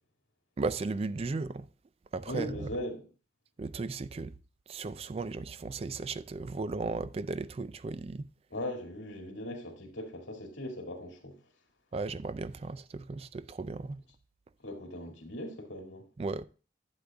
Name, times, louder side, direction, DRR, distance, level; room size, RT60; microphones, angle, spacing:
voice 1, 0.6-1.7 2.1-2.7 3.6-4.3 4.7-8.3 11.9-14.0 16.2-16.4, right 3 dB, 30° right, 0.3 m, -35 dB
voice 2, 2.3-3.1 8.5-11.4 14.6-16.1, left 1 dB, 80° left, 2.1 m, -39 dB
11.5 x 8.0 x 2.3 m
head